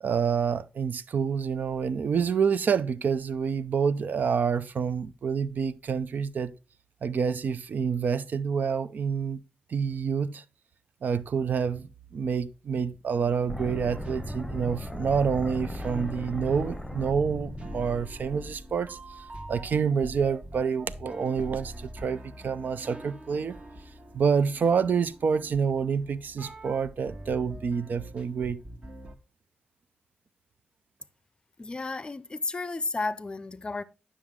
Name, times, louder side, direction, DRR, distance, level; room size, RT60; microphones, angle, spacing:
voice 1, 0.0-6.5 7.0-9.4 9.7-10.4 11.0-23.6 24.1-28.6, right 6 dB, 65° right, 0.6 m, -28 dB
sound 1, 13.5-19.5, left 1 dB, 5° left, 0.9 m, -38 dB
sound 2, 13.5-29.2, right 1 dB, 40° right, 1.3 m, -45 dB
voice 2, 31.6-33.8, left 3 dB, 30° left, 0.5 m, -32 dB
9.8 x 6.3 x 3.6 m
cardioid pair, 90°, 3 cm